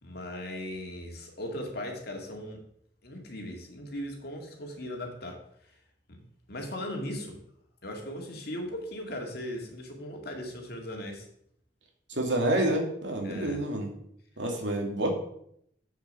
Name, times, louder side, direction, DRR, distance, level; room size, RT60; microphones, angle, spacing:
voice 1, 0.0-2.6 3.0-5.4 6.1-6.2 6.5-7.4 7.8-11.3 13.2-13.6, left 1 dB, 60° left, 2 dB, 2.1 m, -38 dB
voice 2, 12.1-13.9 14.4-15.1, right 1 dB, 90° right, 1 dB, 2.4 m, -28 dB
7.7 x 6.7 x 5.5 m, 0.70 s
head